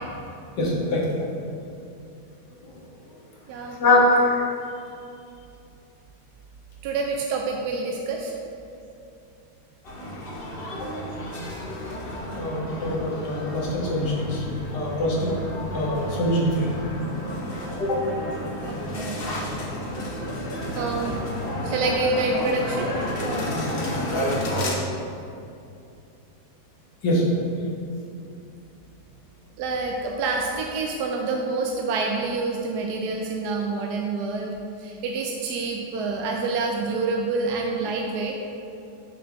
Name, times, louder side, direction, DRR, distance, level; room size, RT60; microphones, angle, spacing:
voice 1, 0.6-1.1 2.6-2.7 3.8-4.5 10.8-10.9 12.3-14.4 14.7-15.3 15.7-16.7 17.8-18.1 27.0-27.3, left 1 dB, 75° left, -3 dB, 1.8 m, -23 dB
voice 2, 3.5-3.8 6.8-8.3 18.7-19.2 20.4-21.2 21.6-22.9 29.6-38.4, right 3 dB, 75° right, 0 dB, 1.1 m, -27 dB
sound 1, 9.8-24.7, equal, 45° left, 0.8 m, -31 dB
6.1 x 6.0 x 3.5 m, 2.6 s
omnidirectional pair, 1.9 m